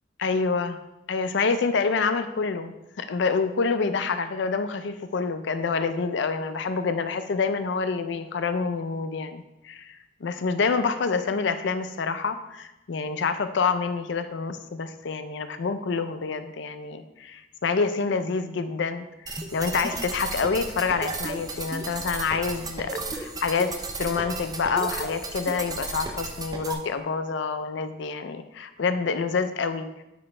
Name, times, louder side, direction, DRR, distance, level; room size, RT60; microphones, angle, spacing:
voice 1, 0.2-0.8 1.1-23.7 24.0-30.0, left 4 dB, 70° left, 10 dB, 0.4 m, -27 dB
sound 1, 19.2-26.7, right 3 dB, 20° right, 0.4 m, -34 dB
6.0 x 5.0 x 3.2 m, 0.94 s
head